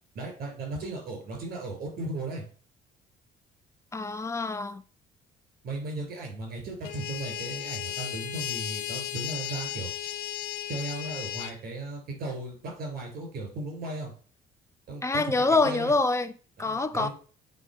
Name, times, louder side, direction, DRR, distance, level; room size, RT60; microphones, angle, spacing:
voice 1, 0.1-2.4 5.6-9.9 10.7-14.1 14.9-15.9 16.6-17.1, right 2 dB, 60° right, 3.8 m, -36 dB
voice 2, 3.9-4.8 15.0-16.3 16.6-17.1, left 3 dB, 15° left, 0.6 m, -25 dB
sound 1, 6.8-11.5, left 13 dB, 80° left, 0.7 m, -35 dB
7.7 x 3.5 x 5.6 m
cardioid pair, 110°, 17 cm